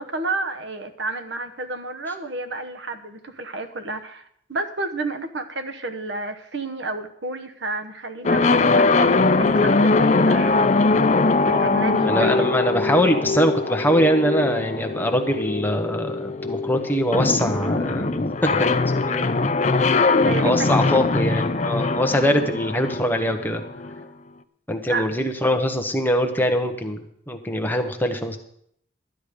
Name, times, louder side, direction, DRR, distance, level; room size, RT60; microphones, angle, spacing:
voice 1, 0.0-10.6 11.5-12.6 20.2-20.7 22.1-22.5 24.9-25.1, right 2 dB, 65° right, 9 dB, 1.1 m, -30 dB
sound 1, 8.2-24.0, left 3 dB, 40° left, 0.6 m, -21 dB
voice 2, 12.0-18.1 18.4-19.3 20.4-23.6 24.7-28.4, equal, 10° left, 4 dB, 1.1 m, -23 dB
12.5 x 10.0 x 5.1 m, 0.69 s
head